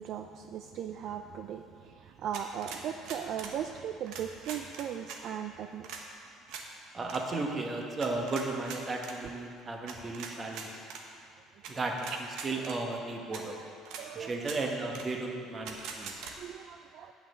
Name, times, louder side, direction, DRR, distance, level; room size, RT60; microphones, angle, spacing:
voice 1, 0.0-1.6 2.2-6.0 12.1-12.2 13.6-13.7 14.0-14.7 16.4-17.1, right 9 dB, 50° right, 6 dB, 0.4 m, -38 dB
sound 1, 2.3-3.6 4.1-5.2 5.8-6.0 6.5-6.7 7.0-7.2 8.0-9.2 9.9-11.0 11.6-11.7 12.0-12.8 13.3-13.4 13.8-14.0 14.4-14.6 14.9-15.1 15.6-16.3, right 6 dB, 75° right, 1.1 m, -42 dB
voice 2, 6.9-10.7 11.7-12.1 12.4-13.6 14.1-16.1, right 3 dB, 25° right, 2 dB, 1.2 m, -34 dB
9.2 x 6.0 x 7.5 m, 2.4 s
cardioid pair, 140°, 0 cm